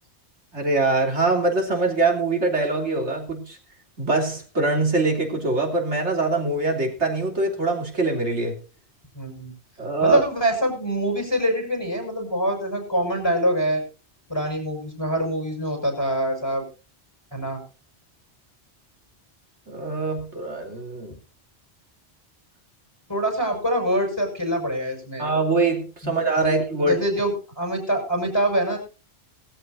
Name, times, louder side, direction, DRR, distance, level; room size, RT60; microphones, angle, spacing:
voice 1, 0.5-3.6 4.0-8.6 9.8-10.2 19.7-21.1 25.2-27.0, right 3 dB, 80° right, 3.6 m, -23 dB
voice 2, 9.1-9.5 10.0-13.8 14.3-16.6 17.3-17.6 23.1-25.3 26.0-26.1 26.4-28.8, equal, 20° left, 6.4 m, -25 dB
20.5 x 14.0 x 2.6 m
omnidirectional pair, 1.1 m